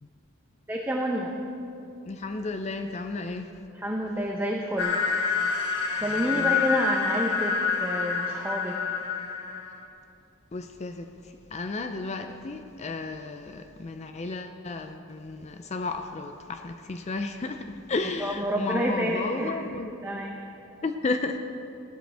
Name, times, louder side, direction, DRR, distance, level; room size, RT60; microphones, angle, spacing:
voice 1, 0.7-1.3 3.7-5.0 6.0-8.8 18.0-19.7 20.0-20.3, equal, 10° right, -1 dB, 0.7 m, -29 dB
voice 2, 2.1-3.5 6.1-6.6 10.5-11.1 11.5-20.1 20.8-21.4, left 3 dB, 35° left, 7 dB, 0.4 m, -33 dB
sound 1, 4.8-9.8, left 6 dB, 75° left, 1.2 m, -27 dB
16.5 x 12.0 x 3.4 m, 2.6 s
head